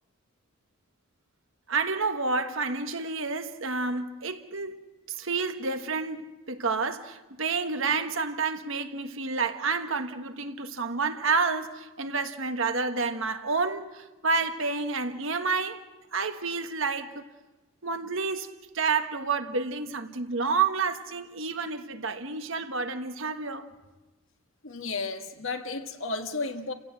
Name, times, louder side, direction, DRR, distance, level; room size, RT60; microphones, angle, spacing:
voice 1, 1.7-4.8 5.1-15.8 16.1-17.2 17.8-23.7, right 4 dB, 60° right, 1.4 m, -29 dB
voice 2, 24.6-26.7, left 3 dB, 65° left, 1.7 m, -33 dB
29.5 x 16.5 x 7.6 m
head